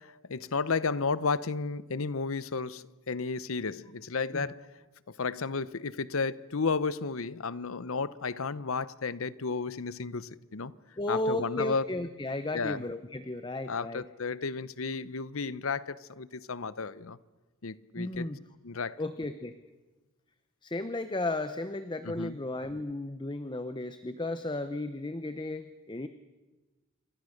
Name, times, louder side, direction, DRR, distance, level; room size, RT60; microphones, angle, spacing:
voice 1, 0.0-4.7 5.1-10.7 11.1-11.9 12.5-12.8 13.7-17.2 17.6-18.3 18.6-19.0 22.0-22.4, left 4 dB, 65° left, 0.8 m, -33 dB
voice 2, 11.0-14.0 18.0-18.4 19.0-19.6 20.6-26.1, left 2 dB, 20° left, 0.7 m, -34 dB
27.5 x 24.0 x 6.5 m
head